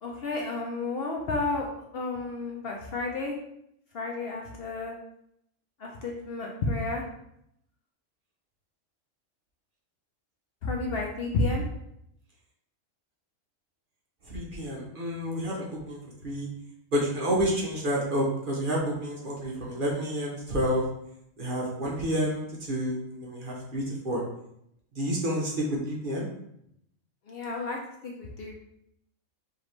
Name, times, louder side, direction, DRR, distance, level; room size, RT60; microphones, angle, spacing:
voice 1, 0.0-1.7 1.9-3.3 3.9-4.9 5.8-7.0 10.6-11.6 27.3-28.6, left 3 dB, 60° left, 0 dB, 0.7 m, -31 dB
voice 2, 14.2-16.5 16.9-20.8 21.4-24.2 24.9-26.3, equal, 45° right, -3 dB, 0.9 m, -29 dB
4.9 x 2.8 x 3.1 m, 0.76 s
omnidirectional pair, 1.4 m